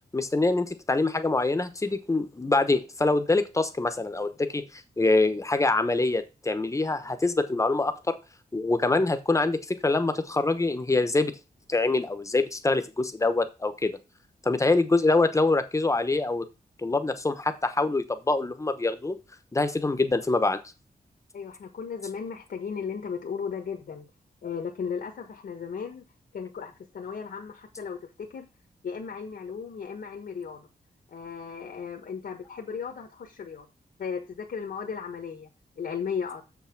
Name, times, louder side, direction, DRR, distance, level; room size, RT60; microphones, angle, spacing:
voice 1, 0.1-8.2 8.5-11.4 11.7-14.0 14.4-16.4 16.8-19.2 19.5-20.6, left 3 dB, 20° left, 0.9 m, -25 dB
voice 2, 21.3-24.1 24.4-26.0 26.3-28.5 28.8-30.7 31.1-33.7 34.0-35.5 35.8-36.4, left 6 dB, 75° left, 1.4 m, -35 dB
7.1 x 5.9 x 5.8 m
wide cardioid pair, 160°, 17 cm